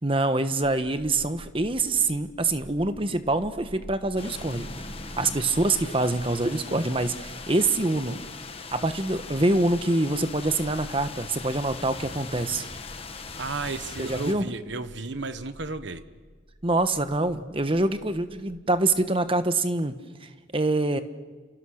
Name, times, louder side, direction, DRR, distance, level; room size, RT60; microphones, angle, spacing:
voice 1, 0.0-4.7 5.2-8.2 8.7-12.7 14.0-14.5 16.6-19.9 20.2-21.0, right 2 dB, 30° right, 10 dB, 1.2 m, -25 dB
sound 1, 0.6-19.5, equal, 45° right, 3.4 m, -49 dB
sound 2, 4.2-14.3, left 4 dB, 30° left, 1.5 m, -40 dB
voice 2, 13.4-16.0, right 3 dB, 65° right, 11 dB, 1.2 m, -33 dB
30.0 x 27.5 x 6.5 m, 1.5 s
head